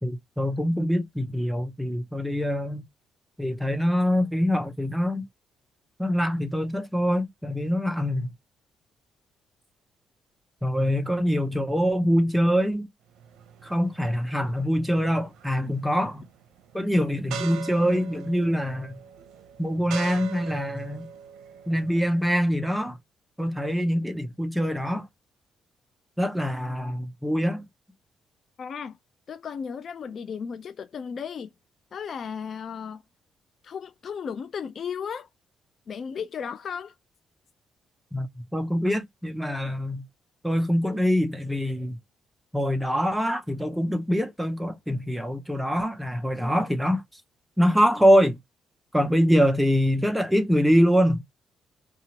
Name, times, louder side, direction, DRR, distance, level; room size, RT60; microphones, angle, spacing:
voice 1, 0.0-2.8 3.4-5.2 6.0-8.3 10.6-12.9 13.6-16.3 16.7-18.9 19.6-21.1 21.7-23.0 23.4-25.1 26.2-27.6 38.1-40.0 40.4-42.0 42.5-47.2 47.6-48.4 48.9-51.2, equal, ahead, 0.7 m, -24 dB
sound 1, 13.2-22.5, right 7 dB, 85° right, 0.6 m, -42 dB
voice 2, 28.6-29.0 29.3-31.5 31.9-33.0 33.6-35.3 35.9-36.9, left 6 dB, 55° left, 0.4 m, -35 dB
2.8 x 2.4 x 2.8 m
cardioid pair, 90°, 0 cm